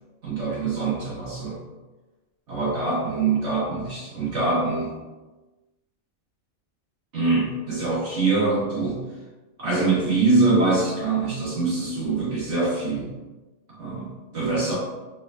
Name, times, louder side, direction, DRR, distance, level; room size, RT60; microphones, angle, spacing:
voice 1, 0.2-1.6 2.5-4.9 7.1-9.0 9.6-13.1 13.7-14.8, right 3 dB, 55° right, -6 dB, 1.7 m, -24 dB
5.0 x 3.5 x 2.4 m, 1.2 s
omnidirectional pair, 1.4 m